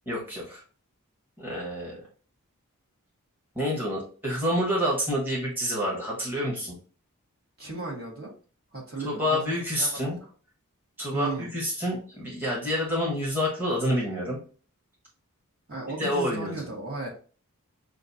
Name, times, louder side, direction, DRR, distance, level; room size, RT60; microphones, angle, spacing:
voice 1, 0.1-0.6 1.4-2.0 3.5-6.8 9.0-10.2 11.0-14.4 16.0-16.5, equal, 10° right, -5 dB, 1.2 m, -28 dB
voice 2, 7.6-8.3 8.7-10.3 11.1-11.5 15.7-17.1, right 3 dB, 45° right, -3 dB, 1.7 m, -35 dB
6.0 x 2.5 x 2.7 m, 0.39 s
head